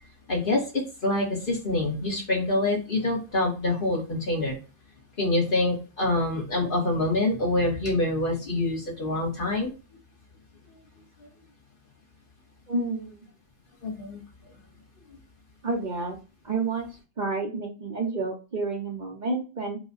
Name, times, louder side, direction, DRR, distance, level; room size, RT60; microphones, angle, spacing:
voice 1, 0.3-4.6 5.2-9.7 13.8-14.2, left 2 dB, 50° left, -1 dB, 1.6 m, -26 dB
voice 2, 12.7-13.2 15.6-16.2 16.4-16.9 17.2-19.8, right 3 dB, 45° right, 1 dB, 0.8 m, -29 dB
4.8 x 2.3 x 3.9 m, 0.32 s
omnidirectional pair, 1.2 m